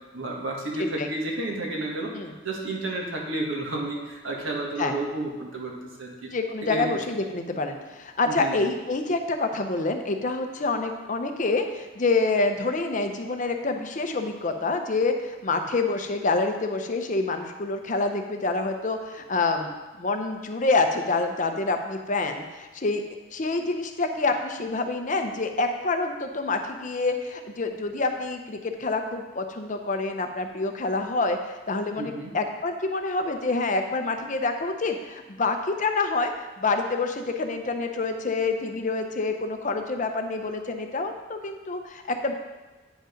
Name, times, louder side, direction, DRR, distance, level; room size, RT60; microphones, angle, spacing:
voice 1, 0.1-2.1 2.4-6.3 6.6-7.0 8.3-8.6 32.0-32.3, right 2 dB, 85° right, -1 dB, 1.7 m, -31 dB
voice 2, 6.3-19.7 20.0-23.0 23.3-36.3 36.6-42.3, left 3 dB, 40° left, 5 dB, 0.7 m, -27 dB
9.0 x 5.1 x 5.1 m, 1.2 s
head